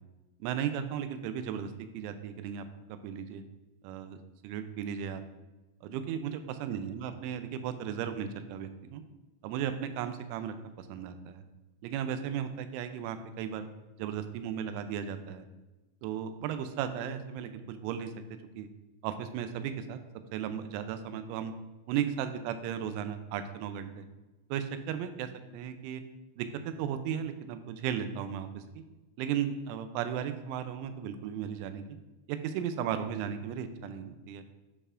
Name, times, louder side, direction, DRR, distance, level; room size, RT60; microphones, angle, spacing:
voice 1, 0.4-3.4 3.8-4.2 4.4-5.2 5.8-9.0 9.4-11.4 11.8-13.7 14.0-15.4 16.0-18.1 18.6-18.7 19.0-20.0 20.3-21.5 21.9-24.1 24.5-26.0 26.4-28.8 29.2-31.8 32.3-34.4, right 8 dB, 85° right, 9 dB, 3.0 m, -35 dB
12.5 x 5.5 x 2.5 m, 1.1 s
omnidirectional pair, 5.5 m